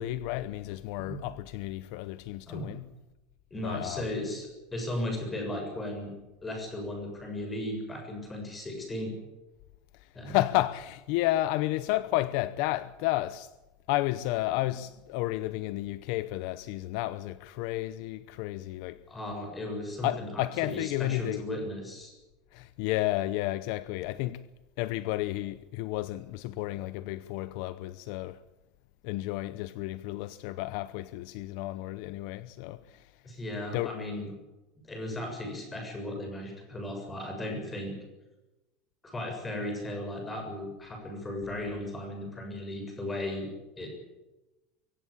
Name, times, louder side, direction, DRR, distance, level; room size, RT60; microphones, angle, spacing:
voice 1, 0.0-2.8 3.6-4.1 10.2-13.5 13.9-19.0 20.0-21.4 22.5-24.4 24.8-28.4 29.0-33.1 33.7-34.0, left 16 dB, 55° left, 0.8 m, -32 dB
voice 2, 3.5-6.1 6.4-9.2 10.1-10.4 19.1-22.1 33.2-34.3 34.9-38.0 39.0-43.5 43.8-43.9, left 1 dB, 10° left, 7.0 m, -36 dB
24.0 x 16.0 x 8.6 m
cardioid pair, 170°, 0 cm